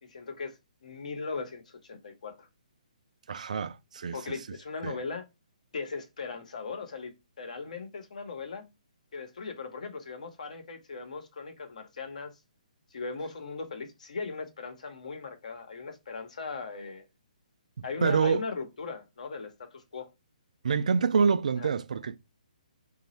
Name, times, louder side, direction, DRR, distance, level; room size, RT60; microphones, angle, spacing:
voice 1, 0.0-2.5 4.1-5.2 5.7-8.6 9.1-12.3 12.9-17.0 17.8-20.1 21.6-21.7, left 4 dB, 60° left, 0.8 m, -38 dB
voice 2, 3.3-4.2 4.8-5.0 17.8-18.4 20.6-22.2, right 6 dB, 60° right, 0.4 m, -26 dB
3.0 x 2.3 x 4.1 m
figure-of-eight pair, 135°, 4 cm